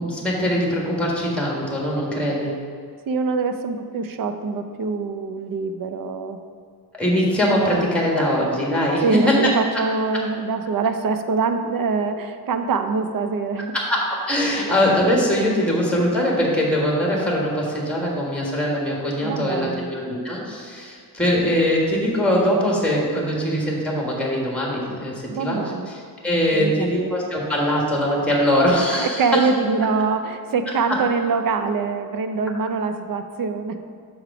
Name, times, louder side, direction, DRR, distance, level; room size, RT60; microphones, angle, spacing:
voice 1, 0.0-2.5 6.9-9.4 13.7-25.1 25.4-25.6 25.9-29.5, equal, 5° left, -3 dB, 1.6 m, -22 dB
voice 2, 3.1-6.4 9.0-13.7 14.6-14.7 15.6-15.7 19.2-19.9 25.3-25.9 26.5-27.1 28.9-33.8, right 4 dB, 60° right, 8 dB, 0.6 m, -24 dB
7.1 x 4.9 x 4.8 m, 2.2 s
wide cardioid pair, 140°, 38 cm